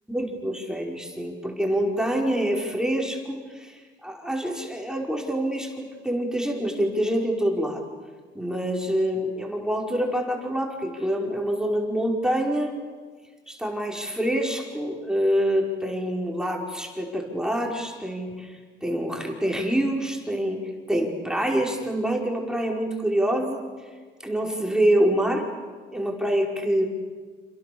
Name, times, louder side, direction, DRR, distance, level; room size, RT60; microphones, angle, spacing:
voice 1, 0.1-7.8 8.3-12.7 13.5-23.6 24.2-25.5 25.9-26.9, right 1 dB, 5° right, 0 dB, 5.2 m, -26 dB
28.5 x 28.0 x 7.1 m, 1.5 s
cardioid pair, 90°, 20 cm